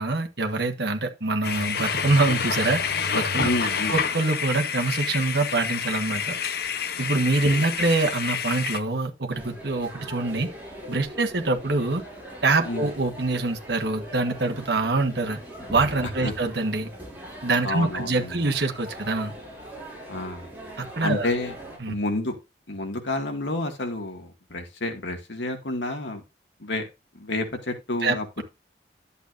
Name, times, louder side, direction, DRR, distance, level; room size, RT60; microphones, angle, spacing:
voice 1, 0.0-2.8 3.1-3.5 3.9-6.3 7.0-10.5 10.9-12.0 12.4-15.4 15.7-16.9 17.4-19.3 20.8-21.3 21.8-21.9 28.0-28.4, right 3 dB, 65° right, 1.5 m, -25 dB
sound 1, 1.4-8.8, left 6 dB, 55° left, 0.8 m, -28 dB
voice 2, 3.4-4.0 7.5-7.7 12.6-12.9 16.2-16.3 17.6-18.4 20.1-20.5 21.0-21.6 21.9-22.4 22.7-26.2 26.6-26.8 27.1-28.4, left 2 dB, 75° left, 2.2 m, -29 dB
sound 2, 9.3-21.8, equal, 10° right, 5.5 m, -41 dB
11.5 x 8.1 x 2.6 m
head